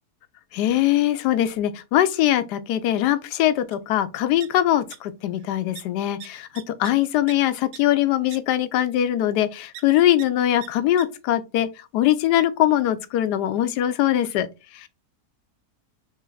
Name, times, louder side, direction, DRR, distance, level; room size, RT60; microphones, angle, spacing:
voice 1, 0.5-11.7 11.9-14.5 14.7-14.9, left 12 dB, 90° left, 1.2 m, -22 dB
sound 1, 3.7-3.8 4.1-5.0 5.2-5.5 5.8-5.9 6.2-7.4 7.7-7.8 8.3-8.4 9.7-9.8 10.2-10.3 10.6-10.7 11.0-11.1, right 12 dB, 80° right, 1.1 m, -41 dB
6.4 x 3.3 x 2.3 m
omnidirectional pair, 1.7 m